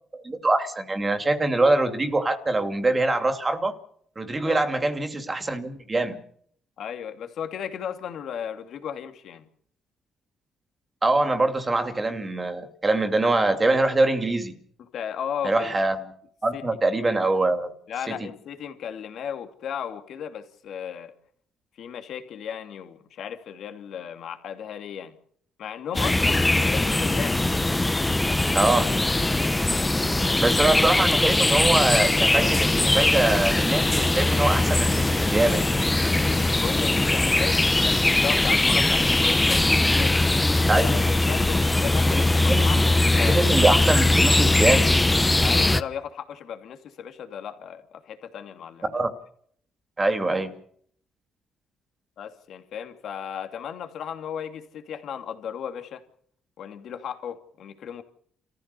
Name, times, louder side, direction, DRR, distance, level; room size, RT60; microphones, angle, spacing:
voice 1, 0.1-3.7 4.2-6.2 11.0-14.5 15.4-16.1 16.4-17.7 18.1-18.3 28.5-28.9 30.4-35.7 40.7-41.0 42.1-42.2 42.5-42.9 43.3-44.8 48.9-49.1 50.0-50.5, right 2 dB, 25° right, 2.7 m, -23 dB
voice 2, 6.8-9.5 14.9-15.8 16.5-16.6 17.9-21.1 21.8-25.2 25.6-27.4 36.0-39.7 40.0-40.3 40.6-43.7 45.4-48.9 52.2-56.0 56.6-58.0, left 8 dB, 70° left, 2.7 m, -35 dB
sound 1, 25.9-45.8, left 2 dB, 15° left, 1.0 m, -21 dB
28.5 x 15.0 x 7.0 m
cardioid pair, 90°, 0 cm